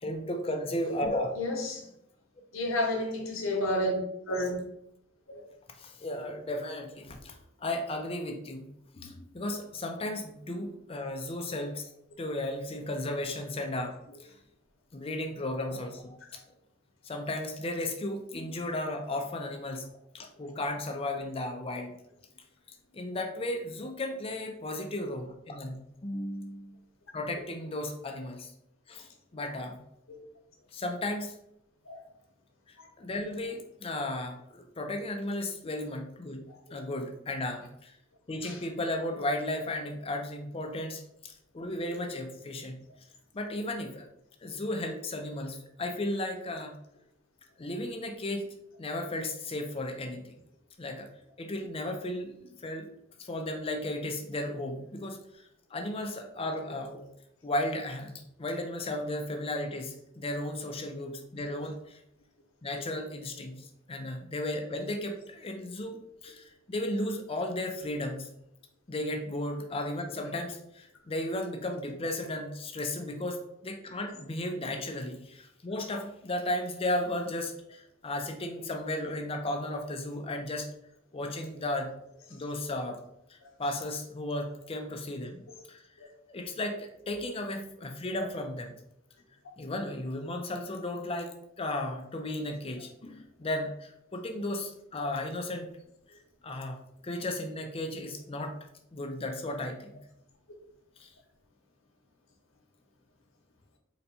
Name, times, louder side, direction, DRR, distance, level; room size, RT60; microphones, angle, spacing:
voice 1, 0.0-1.3 5.7-7.3 7.6-11.9 12.2-14.3 14.9-16.4 17.0-19.9 20.1-21.9 22.9-26.8 27.1-28.5 28.9-29.8 30.7-31.3 32.7-36.4 36.7-37.9 38.3-42.8 43.3-44.1 44.4-46.8 47.6-48.5 48.8-50.3 50.8-51.1 51.4-52.9 53.2-55.2 55.7-57.0 57.4-62.0 62.6-68.3 68.9-80.7 81.1-81.9 82.3-83.0 83.3-85.4 85.7-85.8 86.3-88.7 89.6-95.7 96.4-96.8 97.0-98.6 98.9-100.0 101.0-101.1, left 1 dB, 30° left, 0.5 m, -35 dB
voice 2, 1.4-1.8 2.5-4.0 4.3-4.5 5.3-5.4 30.1-30.2 31.9-32.1 38.4-38.6 61.4-61.5 86.0-86.1, left 1 dB, 90° left, 0.9 m, -31 dB
4.0 x 2.2 x 4.2 m
head